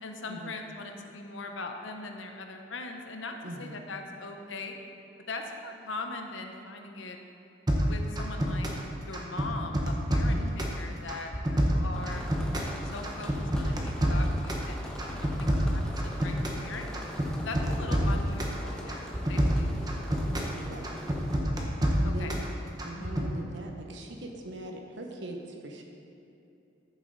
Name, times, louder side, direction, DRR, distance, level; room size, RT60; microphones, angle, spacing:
voice 1, 0.0-4.8 5.3-7.2 7.8-8.7 9.0-12.2 12.9-16.9 17.4-19.8 22.0-22.3 22.9-23.2, left 3 dB, 80° left, 4 dB, 0.9 m, -40 dB
voice 2, 3.4-3.7 10.2-10.6 17.9-18.1 20.5-20.9 22.0-22.4 22.8-25.8, right 1 dB, 70° right, 2 dB, 1.0 m, -41 dB
sound 1, 7.7-8.8 9.1-10.8 11.1-12.7 13.0-14.7 15.0-16.6 16.9-18.6 18.9-20.5 20.8-22.5 22.8-23.3, equal, 20° right, 1.0 m, -28 dB
sound 2, 11.9-21.4, equal, 5° left, 0.9 m, -42 dB
14.0 x 7.2 x 4.0 m, 2.7 s
head